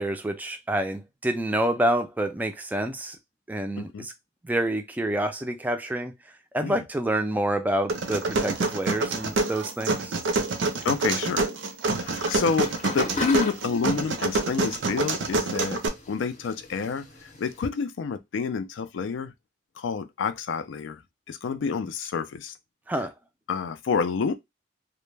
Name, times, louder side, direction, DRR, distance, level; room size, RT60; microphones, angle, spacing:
voice 1, 0.0-3.2 3.5-4.1 4.4-6.1 6.5-10.1 22.9-23.1, right 1 dB, 10° right, 0.3 m, -27 dB
sound 1, 7.9-15.9, right 3 dB, 80° right, 0.5 m, -27 dB
voice 2, 10.8-11.5 11.9-15.8 16.1-19.3 19.8-21.0 21.3-22.5 23.5-24.4, left 5 dB, 90° left, 0.4 m, -29 dB
sound 2, 12.0-17.7, left 2 dB, 40° left, 0.6 m, -37 dB
2.1 x 2.1 x 3.1 m
head